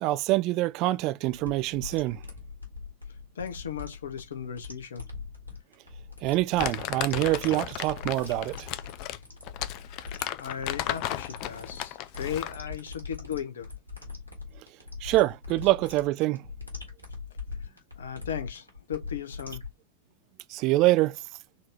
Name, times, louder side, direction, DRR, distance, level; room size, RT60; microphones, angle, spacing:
voice 1, 0.0-2.2 6.2-8.7 15.0-16.5 20.5-21.2, right 18 dB, 40° right, 0.3 m, -25 dB
sound 1, 1.2-19.7, left 4 dB, 85° left, 1.6 m, -42 dB
voice 2, 3.3-5.0 9.7-13.7 17.6-19.6, left 8 dB, 65° left, 0.8 m, -37 dB
Crumpling crinkling, 6.6-12.6, left 13 dB, 40° left, 0.4 m, -34 dB
3.9 x 2.8 x 3.4 m
figure-of-eight pair, 90°, 0 cm